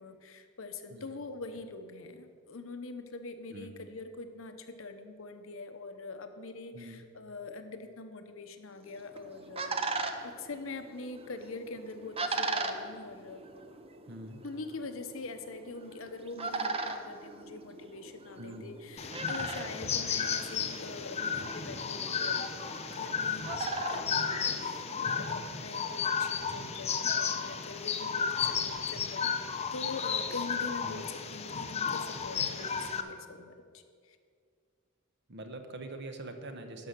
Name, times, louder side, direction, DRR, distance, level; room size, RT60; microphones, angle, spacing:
voice 1, 0.0-9.8 10.2-13.4 14.4-22.6 22.9-29.4 29.7-34.2, left 3 dB, 70° left, 8 dB, 0.8 m, -43 dB
sound 1, 8.9-25.1, right 3 dB, 30° right, 0.6 m, -39 dB
voice 2, 14.1-14.4 18.4-18.7 19.7-20.0 30.8-31.0 35.3-36.9, right 2 dB, 55° right, 6 dB, 1.0 m, -44 dB
sound 2, 19.0-33.0, left 6 dB, 30° left, 0.6 m, -33 dB
12.0 x 5.6 x 6.6 m, 2.2 s
head